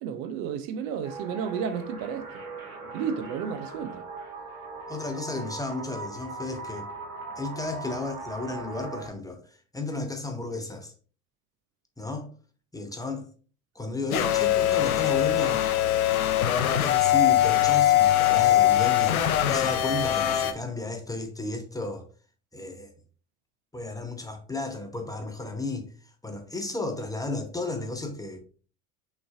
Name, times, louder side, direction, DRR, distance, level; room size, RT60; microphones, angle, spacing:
voice 1, 0.0-2.3 2.9-4.0, right 7 dB, 50° right, 0.7 m, -32 dB
sound 1, 1.0-9.1, right 4 dB, 80° right, 1.3 m, -40 dB
voice 2, 4.9-6.9 7.4-9.4 9.7-10.9 12.0-12.3 12.7-13.3 13.8-15.7 16.8-22.0 22.5-22.9 23.7-25.9 26.2-28.4, left 3 dB, 10° left, 0.8 m, -33 dB
sound 2, 14.1-20.5, left 12 dB, 80° left, 0.6 m, -22 dB
5.9 x 3.3 x 2.4 m
figure-of-eight pair, 65°, 43 cm